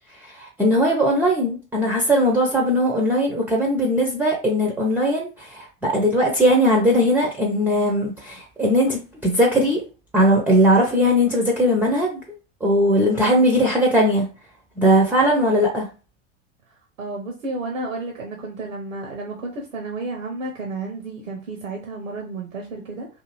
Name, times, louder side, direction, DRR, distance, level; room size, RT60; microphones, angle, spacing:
voice 1, 0.2-9.8 10.1-12.2 12.6-14.3 14.8-15.9, equal, 5° right, 0.5 m, -19 dB
voice 2, 17.0-23.1, right 2 dB, 80° right, 0.7 m, -32 dB
2.6 x 2.5 x 3.0 m
hypercardioid pair, 90°, 38 cm